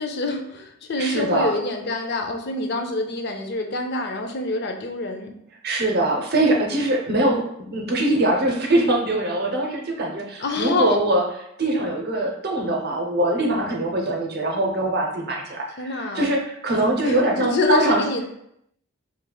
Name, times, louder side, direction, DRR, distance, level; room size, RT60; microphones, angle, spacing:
voice 1, 0.0-5.4 10.4-11.0 15.8-16.3 16.7-18.3, left 2 dB, 50° left, 4 dB, 0.5 m, -26 dB
voice 2, 1.0-1.5 5.6-11.2 11.6-18.0, right 1 dB, 50° right, 0 dB, 0.6 m, -22 dB
5.1 x 3.2 x 2.3 m, 0.76 s
head